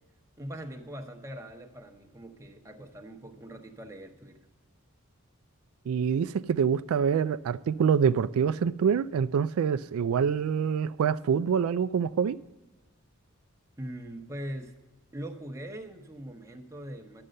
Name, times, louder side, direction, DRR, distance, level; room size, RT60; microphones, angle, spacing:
voice 1, 0.4-4.4 13.8-14.8 15.1-17.3, right 1 dB, 15° right, 0.9 m, -41 dB
voice 2, 5.9-12.4, right 7 dB, 80° right, 0.3 m, -26 dB
11.0 x 7.7 x 5.3 m
head